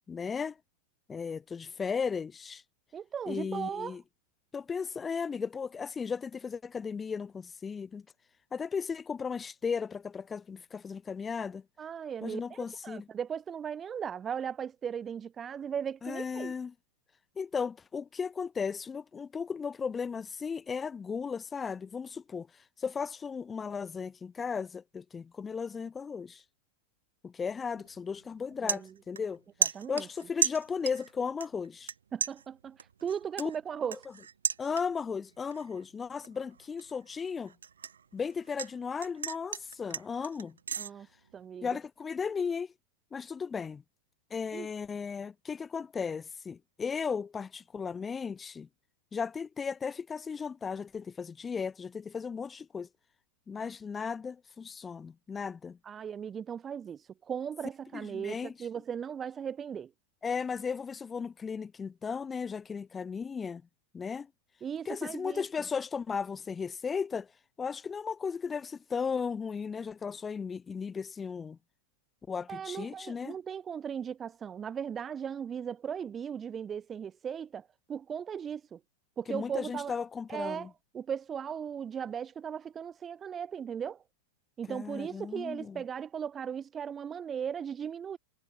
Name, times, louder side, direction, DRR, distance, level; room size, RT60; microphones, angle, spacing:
voice 1, 0.1-0.6 1.1-2.6 3.3-4.0 4.5-8.0 8.5-11.6 12.2-13.1 16.0-16.7 17.4-26.4 27.2-29.4 29.9-31.9 33.4-33.5 34.6-37.5 38.1-40.6 41.6-42.7 43.1-43.8 44.3-48.7 49.1-52.9 53.5-55.8 57.9-58.5 60.2-63.6 63.9-64.3 64.9-67.3 67.6-71.6 72.3-73.4 79.3-80.7 84.7-85.8, left 6 dB, 15° left, 1.7 m, -35 dB
voice 2, 2.9-4.0 11.8-12.6 12.8-16.5 28.6-28.9 29.6-30.1 32.1-34.0 40.8-41.1 41.3-41.7 44.5-44.7 55.9-59.9 64.6-65.4 72.5-78.8 79.2-79.9 80.3-84.0 84.6-88.2, right 8 dB, 20° right, 7.5 m, -37 dB
sound 1, 27.8-28.0 28.3-29.4 29.6-31.1 31.4-31.9 32.2-35.1 35.5-35.8 36.2-38.7 39.0-40.9, right 7 dB, 70° right, 5.9 m, -34 dB
figure-of-eight pair, 90°, 0 cm